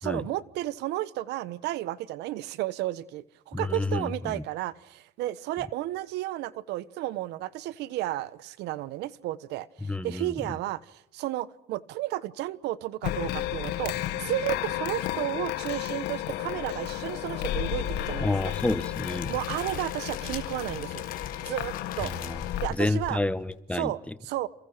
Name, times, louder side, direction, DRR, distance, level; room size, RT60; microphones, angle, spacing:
voice 1, 0.0-18.5 19.3-21.1 21.4-22.1 22.6-23.2 23.7-24.5, right 15 dB, 85° right, 1.2 m, -33 dB
voice 2, 3.5-4.4 9.9-10.3 18.2-19.3 22.0-22.4 22.7-24.1, left 2 dB, 5° left, 1.4 m, -29 dB
sound 1, 13.0-22.7, left 13 dB, 85° left, 1.9 m, -33 dB
Crackle, 18.5-23.5, left 8 dB, 55° left, 3.9 m, -41 dB
29.5 x 28.5 x 6.7 m
cardioid pair, 110°, 17 cm